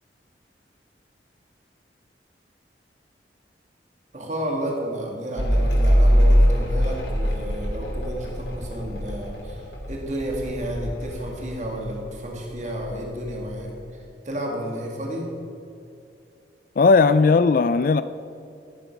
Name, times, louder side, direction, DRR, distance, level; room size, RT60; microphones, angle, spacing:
voice 1, 4.1-9.6 9.9-13.7 14.2-15.3, equal, 40° right, 2.0 m, -31 dB
Mechanical fan, 5.4-12.2 12.5-13.3, equal, 85° left, 3.4 m, -22 dB
voice 2, 16.8-18.0, left 4 dB, 50° left, 0.3 m, -17 dB
15.5 x 9.2 x 5.8 m
head